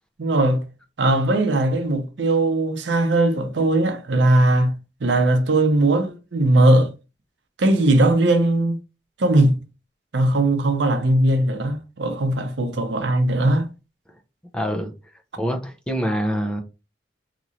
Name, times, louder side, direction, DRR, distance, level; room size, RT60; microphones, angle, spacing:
voice 1, 0.2-0.6 1.0-4.7 5.0-6.9 7.6-8.8 9.2-9.6 10.1-13.7, right 1 dB, 80° right, 0.6 m, -19 dB
voice 2, 14.5-14.9 15.4-16.6, equal, 5° left, 0.4 m, -25 dB
2.9 x 2.9 x 2.5 m
head